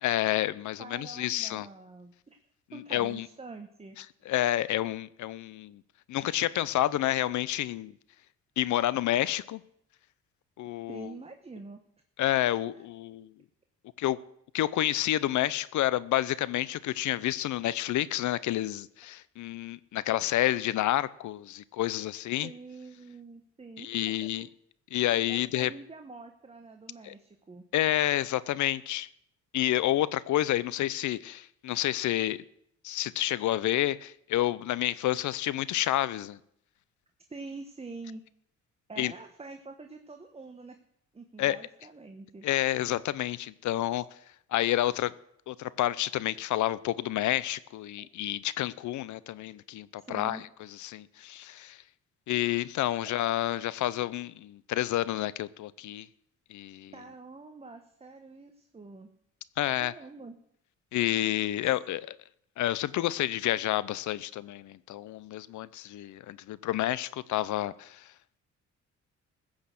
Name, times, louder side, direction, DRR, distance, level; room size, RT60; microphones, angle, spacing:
voice 1, 0.0-1.7 2.7-3.3 4.3-5.8 6.1-7.9 8.6-9.6 10.6-11.1 12.2-13.3 14.0-14.2 14.5-22.5 23.8-24.5 24.9-25.7 27.0-27.1 27.7-29.1 29.5-32.4 32.8-36.4 39.0-39.1 41.4-41.6 42.4-44.0 44.5-45.1 45.5-50.4 50.7-51.8 52.3-56.1 56.5-56.9 59.6-59.9 60.9-62.2 62.6-68.1, left 14 dB, 75° left, 0.7 m, -29 dB
voice 2, 0.8-2.4 2.7-4.0 10.9-11.8 22.4-24.5 25.3-27.6 37.3-38.2 38.9-40.8 41.1-42.5 48.0-48.1 50.0-50.4 53.0-53.1 56.9-59.1 59.8-60.4, right 3 dB, 20° right, 1.1 m, -46 dB
15.5 x 6.5 x 7.7 m
cardioid pair, 90°, 30 cm